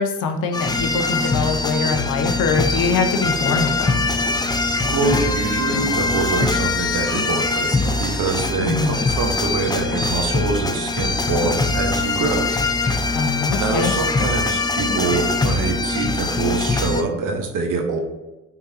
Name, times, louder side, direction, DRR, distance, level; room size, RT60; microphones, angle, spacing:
voice 1, 0.0-4.0 8.6-9.1 13.1-13.9, left 4 dB, 55° left, 6 dB, 0.9 m, -23 dB
sound 1, 0.5-17.0, left 3 dB, 10° left, 0.6 m, -22 dB
sound 2, 2.8-4.0 4.2-4.6 5.0-5.3 5.7-6.1 6.4-6.7 7.2-7.5 7.9-8.2 8.6-8.9 9.2-9.5 9.9-10.4 10.7-11.1 11.4-11.8 12.2-12.5 12.8-13.2 13.5-13.8 14.2-14.5 14.9-15.2 15.6-15.9, left 3 dB, 70° left, 1.3 m, -34 dB
sound 3, 3.7-12.8, left 2 dB, 30° left, 1.2 m, -37 dB
voice 2, 4.9-12.5 13.6-18.0, right 4 dB, 55° right, 2 dB, 1.4 m, -24 dB
9.6 x 3.8 x 2.8 m, 1.1 s
hypercardioid pair, 60°, 37 cm